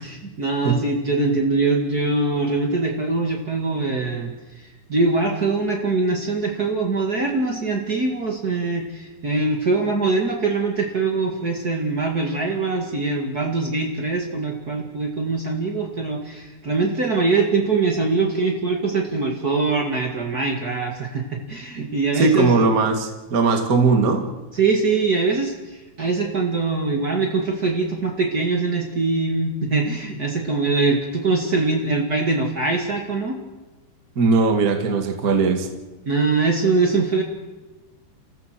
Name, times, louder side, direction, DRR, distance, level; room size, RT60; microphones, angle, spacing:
voice 1, 0.0-4.3 4.9-22.6 24.5-25.5 26.0-33.4 36.0-37.2, right 3 dB, 75° right, 1 dB, 0.8 m, -22 dB
voice 2, 22.1-24.2 34.1-35.7, right 4 dB, 45° right, 4 dB, 1.1 m, -19 dB
29.5 x 15.0 x 7.7 m, 1.2 s
omnidirectional pair, 5.5 m